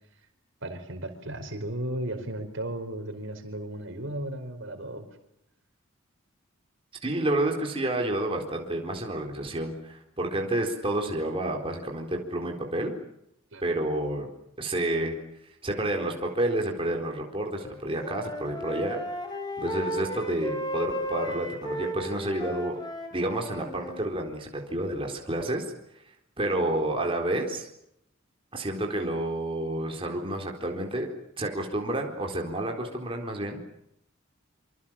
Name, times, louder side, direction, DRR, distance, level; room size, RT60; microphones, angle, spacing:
voice 1, 0.6-5.0 13.5-13.6, right 1 dB, 65° right, 6 dB, 5.0 m, -35 dB
voice 2, 7.0-12.9 13.6-14.3 14.6-15.2 15.6-19.0 19.6-22.8 23.1-25.6 26.4-27.7 28.5-31.1 31.4-33.6, right 1 dB, 25° right, 1 dB, 4.1 m, -29 dB
Wind instrument woodwind instrument, 17.6-24.1, equal, 20° left, 6.3 m, -35 dB
26.5 x 26.0 x 7.5 m, 0.79 s
head